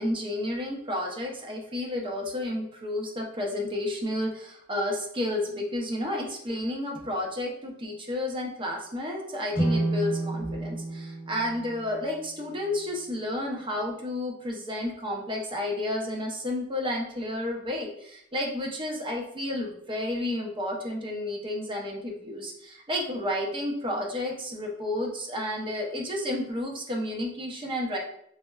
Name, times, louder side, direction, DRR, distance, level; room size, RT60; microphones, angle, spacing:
voice 1, 0.0-28.0, left 1 dB, 25° right, 1 dB, 0.5 m, -31 dB
sound 1, 9.5-12.8, right 2 dB, 40° left, 0.7 m, -31 dB
4.4 x 2.1 x 2.2 m, 0.74 s
head